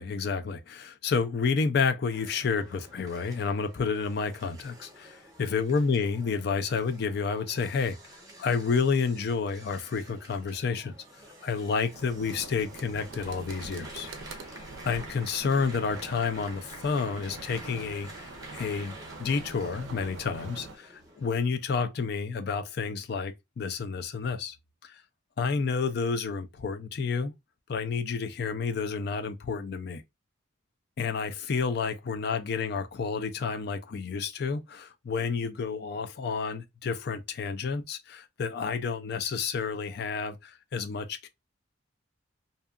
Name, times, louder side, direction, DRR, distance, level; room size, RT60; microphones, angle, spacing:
voice 1, 0.0-8.0 8.4-11.0 11.4-14.1 14.9-24.6 24.8-25.0 25.4-27.3 27.7-30.0 31.0-41.3, left 5 dB, 50° left, 0.4 m, -30 dB
sound 1, 2.1-21.4, right 1 dB, 15° right, 0.8 m, -49 dB
sound 2, 11.9-20.8, right 3 dB, 70° right, 0.4 m, -44 dB
2.7 x 2.3 x 2.3 m
head